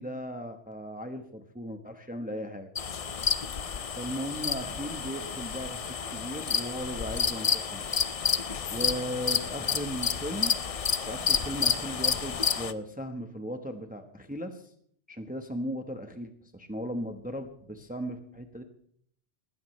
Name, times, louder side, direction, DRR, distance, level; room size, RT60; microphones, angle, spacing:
voice 1, 0.0-2.7 4.0-7.8 8.7-10.5 11.1-14.7 15.1-18.6, equal, 10° right, 6 dB, 1.1 m, -37 dB
sound 1, 2.8-12.7, left 6 dB, 40° left, 0.6 m, -30 dB
20.0 x 15.5 x 3.2 m, 0.63 s
omnidirectional pair, 1.2 m